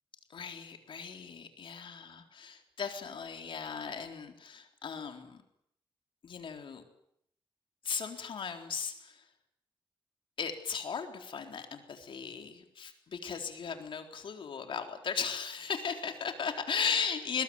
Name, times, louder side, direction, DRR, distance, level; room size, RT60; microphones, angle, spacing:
voice 1, 0.3-5.4 6.2-6.8 7.8-9.2 10.4-17.4, left 6 dB, 70° left, 5 dB, 3.9 m, -37 dB
21.5 x 21.5 x 9.5 m, 0.73 s
cardioid pair, 95°, 9 cm